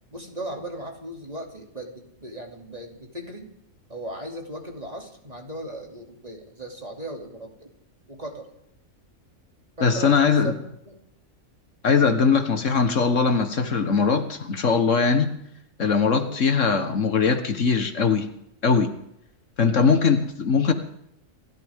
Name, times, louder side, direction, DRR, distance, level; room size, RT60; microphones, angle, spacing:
voice 1, 0.1-3.5 3.9-7.7 8.1-8.5 9.8-10.6 10.8-11.0 12.2-12.3 16.3-16.4 19.6-20.0, right 1 dB, 30° right, 1 dB, 2.9 m, -37 dB
voice 2, 9.8-10.5 11.8-15.3 15.8-18.3 18.6-19.0 19.6-20.7, left 5 dB, 65° left, 8 dB, 1.6 m, -21 dB
28.0 x 14.0 x 3.6 m, 0.77 s
omnidirectional pair, 1.4 m